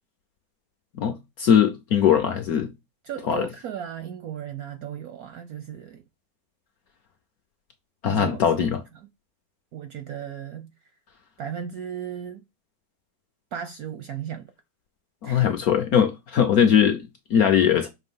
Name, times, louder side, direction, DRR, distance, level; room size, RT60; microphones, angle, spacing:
voice 1, 1.0-2.7 3.3-3.5 8.0-8.8 15.2-17.9, left 8 dB, 65° left, 0.9 m, -20 dB
voice 2, 3.0-6.0 8.1-8.7 8.9-9.1 9.7-10.7 11.4-12.4 13.5-14.5 15.2-15.5, right 9 dB, 70° right, 0.9 m, -36 dB
6.0 x 3.0 x 5.4 m
omnidirectional pair, 2.2 m